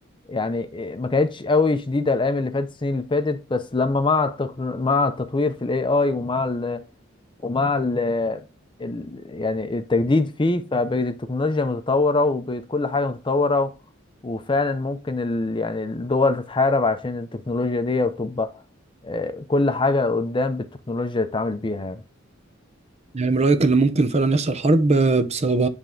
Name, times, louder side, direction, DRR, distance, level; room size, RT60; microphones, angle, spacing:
voice 1, 0.3-6.9 7.4-8.4 8.8-13.7 14.2-18.5 19.0-22.0, left 3 dB, 25° left, 0.6 m, -23 dB
voice 2, 23.1-25.7, right 3 dB, 35° right, 0.7 m, -19 dB
10.0 x 3.5 x 3.7 m
head